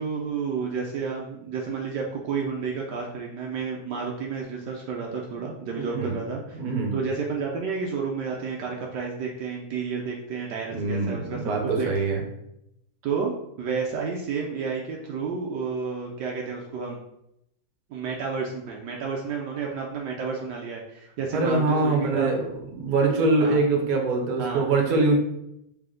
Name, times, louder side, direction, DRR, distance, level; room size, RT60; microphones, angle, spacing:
voice 1, 0.0-11.9 13.0-17.0 17.9-22.3 22.9-23.0 23.4-23.6 24.4-24.6, right 5 dB, 75° right, -1 dB, 1.2 m, -31 dB
voice 2, 6.5-6.9 10.7-12.2 21.3-22.4 22.7-25.2, right 3 dB, 60° right, 1 dB, 1.2 m, -23 dB
3.4 x 3.4 x 3.7 m, 0.80 s
omnidirectional pair, 1.9 m